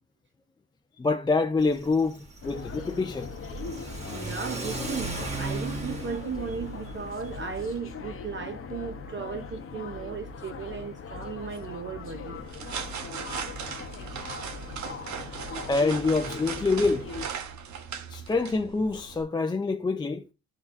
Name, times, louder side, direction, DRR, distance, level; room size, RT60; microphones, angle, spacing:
voice 1, 1.0-3.3 15.7-17.1 18.1-20.3, left 3 dB, 15° left, 0.4 m, -26 dB
Car / Accelerating revving vroom, 1.6-7.8, right 2 dB, 20° right, 1.7 m, -37 dB
sound 1, 2.4-17.3, left 4 dB, 45° left, 0.8 m, -40 dB
voice 2, 4.1-12.4, right 6 dB, 40° right, 0.7 m, -36 dB
sound 2, 12.3-19.2, right 7 dB, 70° right, 1.0 m, -38 dB
11.0 x 3.9 x 2.5 m
cardioid pair, 90°, 30 cm